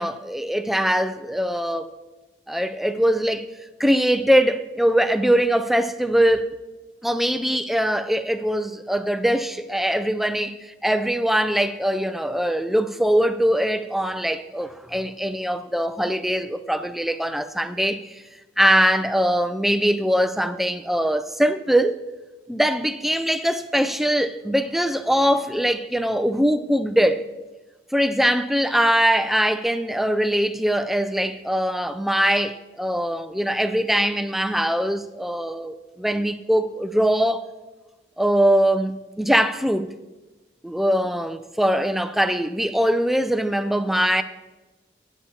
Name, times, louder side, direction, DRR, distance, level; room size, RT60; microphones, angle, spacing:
voice 1, 0.0-1.9 2.5-3.5 3.8-6.5 7.0-18.2 18.6-22.0 22.5-27.3 27.9-37.5 38.2-39.9 40.6-44.2, equal, ahead, 0.3 m, -22 dB
18.0 x 8.3 x 2.8 m
head